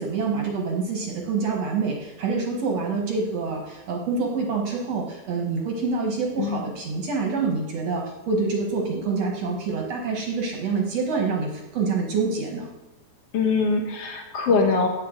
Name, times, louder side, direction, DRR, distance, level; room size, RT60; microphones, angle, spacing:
voice 1, 0.0-12.7, right 4 dB, 60° right, 0 dB, 1.8 m, -26 dB
voice 2, 6.4-6.7 13.3-14.9, left 4 dB, 70° left, 3 dB, 1.4 m, -22 dB
18.0 x 7.6 x 3.8 m, 1.0 s
omnidirectional pair, 4.4 m